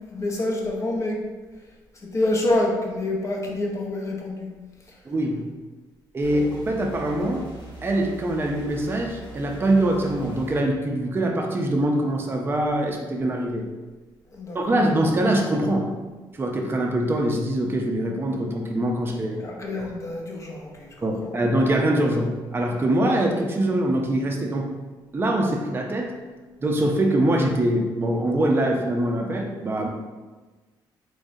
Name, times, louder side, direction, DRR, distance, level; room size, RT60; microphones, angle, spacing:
voice 1, 0.1-1.2 2.0-4.5 6.3-6.4 14.3-14.8 19.4-20.9 21.2-21.4, left 1 dB, 35° left, -1 dB, 0.7 m, -27 dB
voice 2, 5.1-5.4 6.1-7.4 7.8-13.7 14.5-15.9 16.4-19.4 21.0-24.7 25.1-26.1 26.6-29.9, right 1 dB, 25° right, 1 dB, 0.5 m, -23 dB
sound 1, 6.2-10.6, right 1 dB, 85° left, 1.1 m, -42 dB
3.6 x 3.2 x 2.6 m, 1.3 s
cardioid pair, 100°, 9 cm